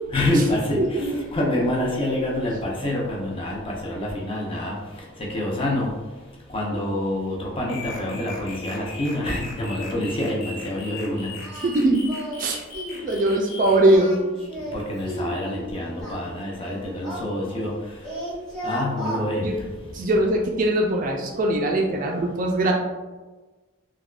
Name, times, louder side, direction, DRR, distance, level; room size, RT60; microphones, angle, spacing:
voice 1, 0.1-4.7 5.2-5.9 6.5-11.3 14.7-17.7 18.6-19.5, left 1 dB, 25° left, -3 dB, 0.5 m, -26 dB
voice 2, 0.8-1.2 11.6-12.0 12.4-12.6 13.0-14.2 19.4-19.6 19.9-22.7, right 1 dB, 40° right, 1 dB, 0.3 m, -21 dB
sound 1, 7.7-14.0, left 2 dB, 75° left, 0.6 m, -39 dB
Singing, 11.4-11.7 12.1-12.5 12.7-13.0 13.8-15.4 16.0-17.8 18.0-19.2, equal, ahead, 0.8 m, -34 dB
3.4 x 2.2 x 2.3 m, 1.3 s
head